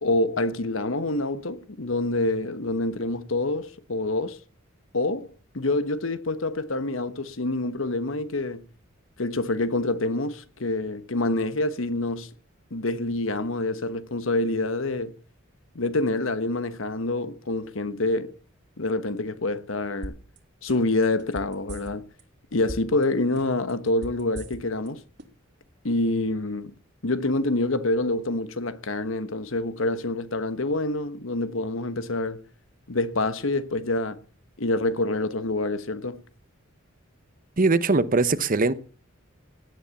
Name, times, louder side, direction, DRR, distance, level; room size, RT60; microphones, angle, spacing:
voice 1, 0.0-4.4 4.9-8.6 9.2-12.3 12.7-15.1 15.7-18.4 18.8-20.1 20.6-22.0 22.5-25.0 25.8-26.7 27.0-32.4 32.9-34.2 34.6-36.2, left 2 dB, 75° left, 1.2 m, -26 dB
sound 1, 20.0-20.4 20.7-22.2 22.5-23.0 23.4-24.9 25.2-25.3, right 1 dB, 55° right, 2.8 m, -38 dB
voice 2, 37.6-38.7, right 3 dB, 40° right, 1.0 m, -21 dB
17.0 x 10.0 x 7.1 m
head